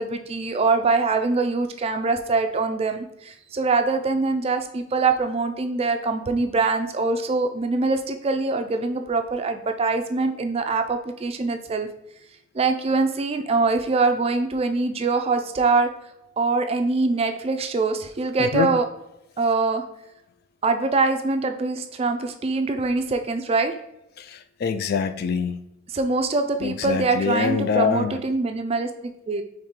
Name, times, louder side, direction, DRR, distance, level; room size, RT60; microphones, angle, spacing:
voice 1, 0.0-11.9 12.5-15.9 16.4-18.8 19.4-19.8 20.6-23.7 25.9-29.4, right 3 dB, 30° right, 7 dB, 0.4 m, -23 dB
voice 2, 18.4-18.7 24.2-25.6 26.6-28.2, left 6 dB, 50° left, 10 dB, 0.3 m, -25 dB
4.3 x 3.2 x 3.6 m, 0.83 s
head